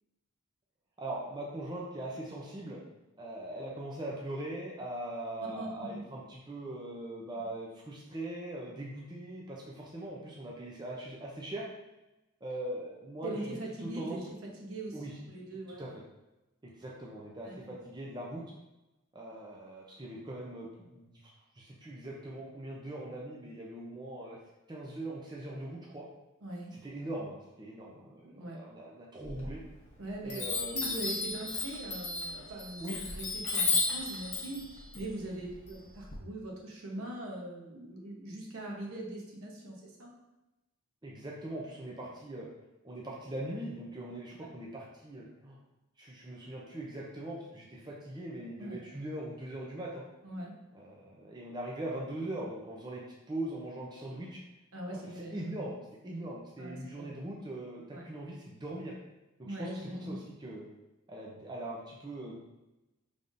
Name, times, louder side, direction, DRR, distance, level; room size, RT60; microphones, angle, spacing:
voice 1, 1.0-2.8 3.2-11.7 12.4-14.2 14.9-15.2 15.8-15.9 16.6-18.4 19.1-21.2 21.6-24.4 24.7-26.1 26.7-29.6 30.2-30.9 32.8-33.0 41.0-42.5 42.8-45.6 46.0-50.0 50.7-54.4 54.9-55.0 55.3-58.9 59.6-60.7 61.1-62.4, right 1 dB, 20° right, -3 dB, 0.5 m, -41 dB
voice 2, 5.5-6.1 13.2-15.9 17.4-17.7 26.4-26.7 28.2-28.6 30.0-30.4 30.7-34.7 34.9-40.1 48.6-48.8 50.2-50.5 54.7-55.4 56.6-57.1 57.9-58.0 59.4-60.2, right 1 dB, 70° right, -2 dB, 1.0 m, -41 dB
Chime, 29.3-29.9 30.3-36.2, left 4 dB, 30° left, 0.9 m, -34 dB
5.4 x 3.4 x 2.6 m, 1.0 s
head